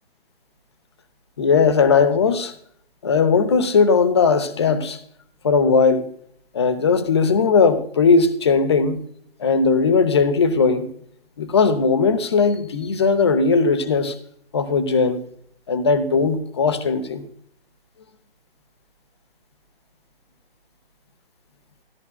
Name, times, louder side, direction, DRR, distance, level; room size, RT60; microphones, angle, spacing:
voice 1, 1.4-2.5 3.0-5.0 5.4-6.1 6.5-9.0 9.4-10.9 11.4-14.1 14.5-15.2 15.7-17.3, left 5 dB, 25° left, 11 dB, 0.7 m, -18 dB
13.5 x 11.5 x 2.2 m, 0.65 s
figure-of-eight pair, 145°, 30 cm